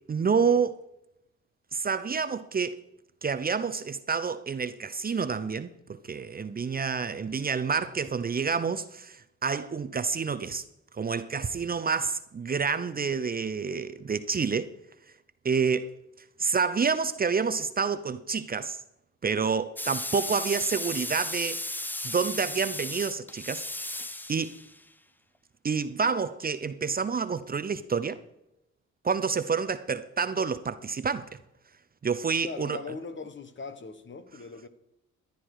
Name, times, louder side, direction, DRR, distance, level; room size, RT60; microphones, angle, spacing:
voice 1, 0.1-0.8 1.7-2.8 3.2-5.7 6.0-10.6 11.0-14.7 15.4-15.9 16.4-18.8 19.2-21.6 22.0-23.9 24.3-24.5 25.6-28.2 29.0-31.3 32.0-32.8, right 5 dB, 30° right, 0.7 m, -28 dB
sound 1, 19.8-24.8, left 1 dB, 5° left, 0.6 m, -35 dB
voice 2, 32.4-34.7, left 4 dB, 40° left, 1.3 m, -40 dB
14.5 x 11.0 x 4.9 m
cardioid pair, 90°, 30 cm